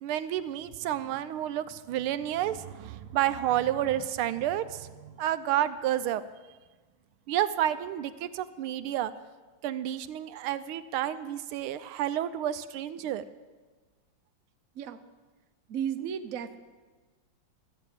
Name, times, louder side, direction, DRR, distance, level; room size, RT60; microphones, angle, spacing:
voice 1, 0.0-6.2 7.3-9.1 9.6-13.2, right 12 dB, 90° right, 12 dB, 1.5 m, -30 dB
voice 2, 15.7-16.6, right 8 dB, 60° right, 8 dB, 0.9 m, -34 dB
14.5 x 8.0 x 8.4 m, 1.3 s
omnidirectional pair, 2.3 m